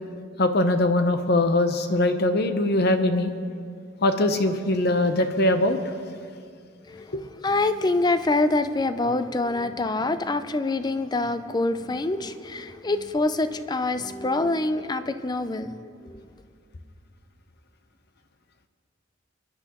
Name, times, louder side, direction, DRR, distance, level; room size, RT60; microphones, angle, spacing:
voice 1, 0.4-3.3 4.0-5.8 7.1-7.2, left 1 dB, 55° left, 8 dB, 0.8 m, -22 dB
voice 2, 6.9-16.3, left 2 dB, 20° left, 11 dB, 0.5 m, -26 dB
28.0 x 10.5 x 3.0 m, 2.2 s
head